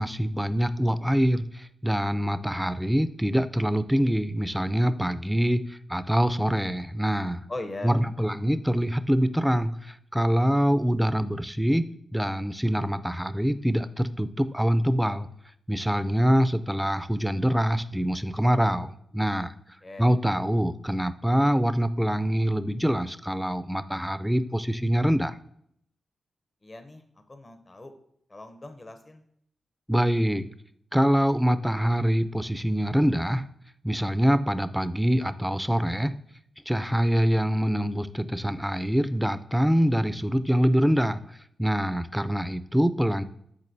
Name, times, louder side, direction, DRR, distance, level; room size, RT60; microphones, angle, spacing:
voice 1, 0.0-7.5 7.8-15.3 15.7-19.5 20.0-25.4 29.9-30.5 30.9-33.5 33.8-36.1 36.7-41.2 41.6-43.2, equal, 5° right, 12 dB, 0.4 m, -24 dB
voice 2, 7.5-8.0 19.8-20.1 26.6-27.0 27.3-27.9 28.3-29.2, left 2 dB, 35° left, 7 dB, 0.7 m, -39 dB
9.7 x 4.1 x 2.6 m, 0.71 s
cardioid pair, 55°, 0 cm